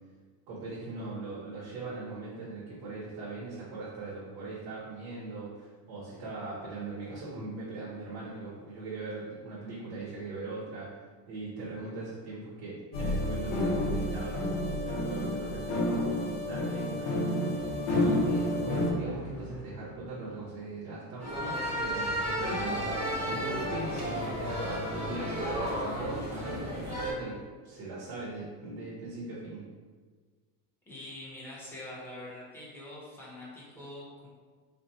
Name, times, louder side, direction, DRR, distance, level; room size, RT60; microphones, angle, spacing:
voice 1, 0.5-10.9 11.3-29.7, right 3 dB, 60° right, -6 dB, 1.3 m, -40 dB
sound 1, 12.9-18.9, left 1 dB, 65° left, 1.0 m, -30 dB
sound 2, 17.5-20.6, equal, 90° right, 1.2 m, -46 dB
sound 3, 21.2-27.1, equal, 15° right, 1.1 m, -33 dB
voice 2, 30.8-34.3, left 1 dB, 5° left, -8 dB, 1.1 m, -44 dB
3.4 x 2.5 x 4.2 m, 1.5 s
cardioid pair, 130°, 50 cm